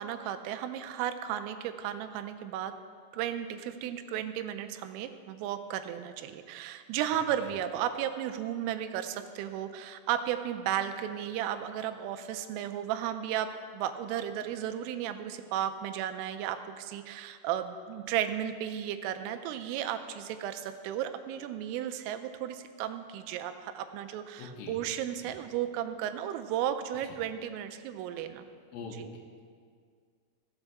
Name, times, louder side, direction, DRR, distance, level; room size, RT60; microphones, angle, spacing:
voice 1, 0.0-2.7 3.1-13.5 13.7-28.5 28.8-29.1, right 10 dB, 90° right, 8 dB, 3.2 m, -34 dB
voice 2, 24.4-24.8 25.2-25.3 27.0-27.2 28.7-29.0, left 5 dB, 80° left, 0 dB, 3.7 m, -43 dB
15.0 x 8.1 x 3.4 m, 2.1 s
omnidirectional pair, 5.7 m